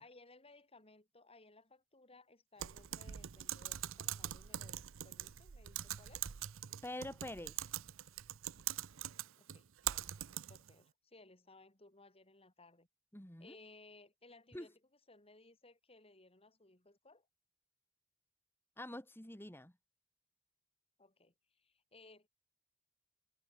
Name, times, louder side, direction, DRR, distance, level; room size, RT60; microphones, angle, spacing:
voice 1, 0.0-6.3 9.4-12.9 13.4-14.7 15.1-17.3 21.0-22.3, left 2 dB, 30° left, 6.5 m, -62 dB
Typing, 2.6-10.7, right 12 dB, 70° right, 0.6 m, -43 dB
voice 2, 6.8-7.6 13.1-13.6 14.5-14.7 18.8-19.7, left 1 dB, 10° left, 2.5 m, -46 dB
head